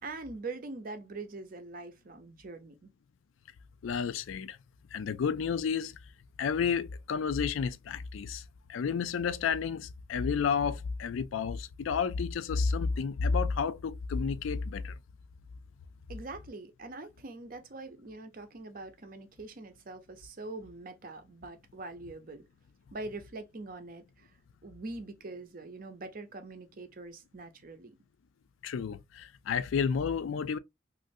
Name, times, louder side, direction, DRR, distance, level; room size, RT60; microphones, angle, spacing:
voice 1, 0.0-2.9 16.1-22.4 22.9-24.3 24.6-28.0, right 3 dB, 45° right, 0.6 m, -43 dB
voice 2, 3.8-4.6 4.9-6.0 6.4-8.4 8.7-14.9 28.6-30.6, left 6 dB, 85° left, 0.4 m, -31 dB
3.1 x 2.5 x 2.5 m
head